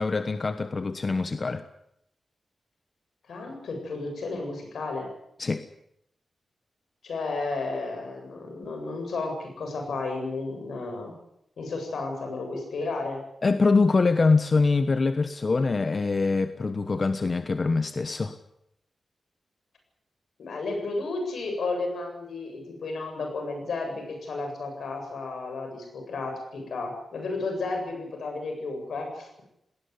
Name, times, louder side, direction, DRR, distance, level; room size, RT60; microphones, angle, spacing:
voice 1, 0.0-1.6 5.4-5.6 13.4-18.4, left 3 dB, 50° left, 10 dB, 1.2 m, -24 dB
voice 2, 3.3-5.1 7.0-11.1 11.6-13.2 20.4-29.4, left 3 dB, 85° left, 4 dB, 7.9 m, -33 dB
19.5 x 18.5 x 9.8 m, 0.78 s
cardioid pair, 70°, 0 cm